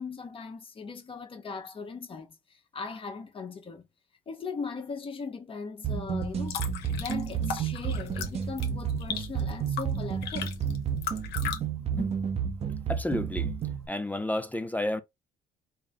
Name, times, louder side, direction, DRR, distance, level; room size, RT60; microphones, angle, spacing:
voice 1, 0.0-3.9 4.3-6.6 6.9-10.6, left 5 dB, 30° left, 0.9 m, -39 dB
sound 1, 5.8-13.9, right 7 dB, 40° right, 0.6 m, -31 dB
sound 2, 6.2-11.6, left 8 dB, 75° left, 0.9 m, -38 dB
voice 2, 12.9-13.5 13.9-15.0, left 1 dB, 10° left, 0.4 m, -31 dB
4.0 x 2.0 x 3.5 m
cardioid pair, 110°, 17 cm